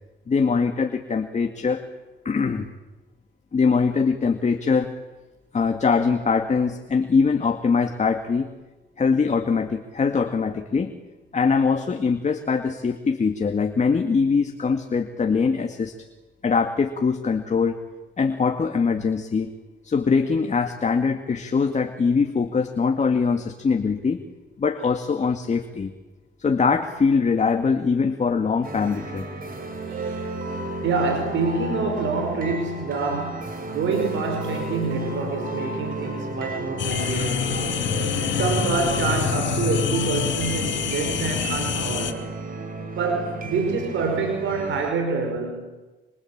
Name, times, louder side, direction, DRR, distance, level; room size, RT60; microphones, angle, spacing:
voice 1, 0.3-1.8 2.3-2.7 3.5-5.0 5.5-8.5 9.0-10.9 11.3-15.9 16.4-17.8 18.2-19.5 19.8-24.2 24.6-25.9 26.4-29.3, left 5 dB, 35° left, 6 dB, 2.1 m, -22 dB
sound 1, 28.6-44.9, right 2 dB, 45° right, 5.5 m, -33 dB
voice 2, 29.9-30.3 30.8-37.8 38.3-42.2 43.0-45.6, right 4 dB, 75° right, 4 dB, 5.5 m, -26 dB
sound 2, 36.8-42.1, left 8 dB, 65° left, 2.7 m, -26 dB
26.5 x 25.0 x 8.9 m, 1.2 s
cardioid pair, 90°, 20 cm